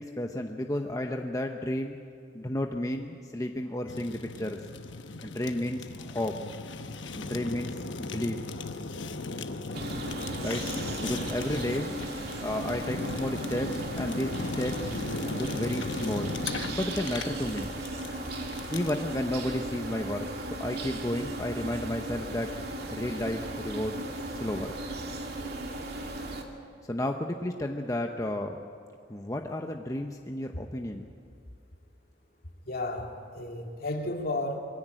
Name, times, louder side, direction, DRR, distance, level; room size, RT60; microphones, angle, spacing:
voice 1, 0.0-2.0 2.3-4.6 5.2-6.4 7.2-8.4 10.4-10.7 11.0-11.9 12.4-14.9 15.3-16.4 16.7-17.8 18.7-20.3 20.6-22.5 22.9-24.0 24.3-24.7 26.9-28.7 29.1-31.1, left 1 dB, 20° left, 3 dB, 0.8 m, -32 dB
Fire, 3.9-19.0, left 3 dB, 80° left, 1.1 m, -37 dB
sound 1, 9.7-26.4, right 2 dB, 55° right, 2.3 m, -36 dB
voice 2, 32.7-34.6, left 2 dB, 55° left, 2 dB, 2.4 m, -33 dB
22.5 x 16.0 x 9.1 m, 2.3 s
head